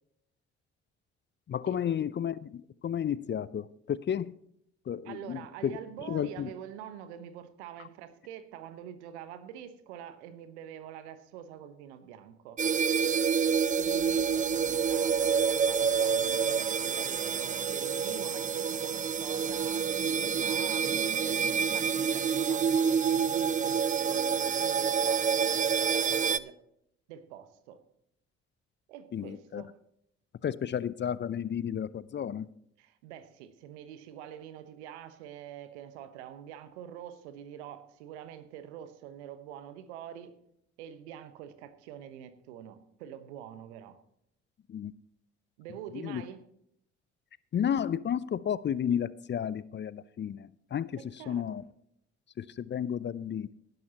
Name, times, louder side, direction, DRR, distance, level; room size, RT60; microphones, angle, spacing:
voice 1, 1.5-4.3 4.9-5.8 6.1-6.5 29.1-29.6 30.4-32.5 44.7-44.9 45.9-46.2 47.5-50.9 51.3-51.6 52.4-53.5, left 9 dB, 35° left, 0.5 m, -32 dB
voice 2, 5.0-12.6 13.7-26.6 27.1-27.8 28.9-29.8 32.8-40.4 40.8-44.0 45.6-46.4 51.0-51.6, right 10 dB, 75° right, 1.1 m, -45 dB
sound 1, 12.6-26.4, right 6 dB, 25° right, 0.5 m, -28 dB
18.5 x 11.0 x 2.9 m
figure-of-eight pair, 45°, 34 cm